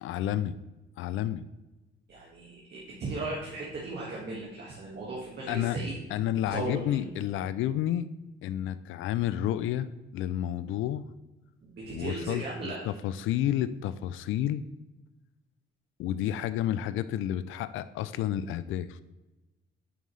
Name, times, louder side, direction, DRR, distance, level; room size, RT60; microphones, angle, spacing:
voice 1, 0.0-0.6 1.0-1.5 5.5-5.8 6.1-8.1 8.4-11.1 11.9-14.6 16.0-19.0, left 11 dB, 80° left, 14 dB, 0.4 m, -30 dB
voice 2, 2.1-6.0 6.5-6.9 11.6-12.8, right 2 dB, 55° right, -4 dB, 1.8 m, -36 dB
9.2 x 5.4 x 3.2 m, 1.1 s
cardioid pair, 90°, 20 cm